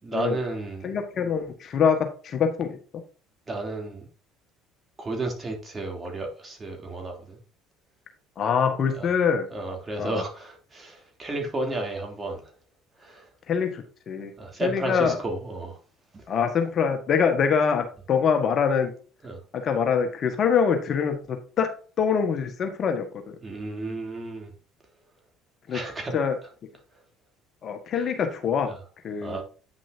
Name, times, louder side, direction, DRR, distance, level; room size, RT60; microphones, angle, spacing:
voice 1, 0.0-1.0 3.5-4.1 5.0-7.4 8.9-9.1 9.5-12.5 13.0-13.3 14.4-15.8 16.1-16.2 19.2-19.4 23.4-24.5 25.7-26.1 28.7-28.8 29.2-29.4, right 2 dB, 25° right, 3.0 m, -32 dB
voice 2, 0.8-2.8 8.4-9.5 10.0-10.2 13.5-14.3 14.6-15.2 16.3-18.9 19.5-21.7 22.0-23.4 25.7-25.8 26.1-26.4 27.6-28.7 29.0-29.4, left 6 dB, 45° left, 1.5 m, -24 dB
9.5 x 6.1 x 2.8 m
hypercardioid pair, 65°, 0 cm